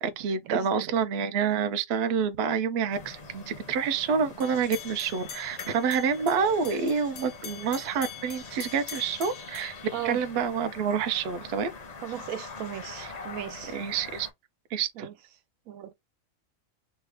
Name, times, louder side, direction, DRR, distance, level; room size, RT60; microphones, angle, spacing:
voice 1, 0.0-9.8 10.0-11.7 13.0-13.1 13.7-14.3 14.7-15.1, right 6 dB, 60° right, 0.7 m, -28 dB
sound 1, 2.9-14.3, left 4 dB, 40° left, 0.6 m, -44 dB
sound 2, 4.4-10.6, left 9 dB, 70° left, 1.0 m, -44 dB
voice 2, 12.0-13.8 15.0-15.1 15.7-15.9, right 11 dB, 90° right, 1.1 m, -36 dB
3.2 x 2.2 x 3.4 m
omnidirectional pair, 1.4 m